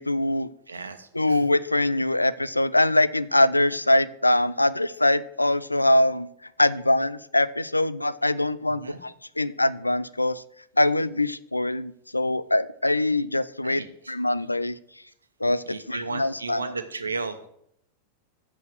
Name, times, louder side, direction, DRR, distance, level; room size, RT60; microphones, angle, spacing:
voice 1, 0.0-0.5 1.1-6.3 6.6-10.4 10.8-14.8 15.4-16.7, left 1 dB, 85° left, 16 dB, 0.4 m, -23 dB
voice 2, 0.7-1.4 8.7-9.0 13.6-14.1 15.7-17.5, right 4 dB, 75° right, 9 dB, 1.0 m, -34 dB
8.0 x 6.3 x 6.4 m, 0.72 s
figure-of-eight pair, 90°, 0 cm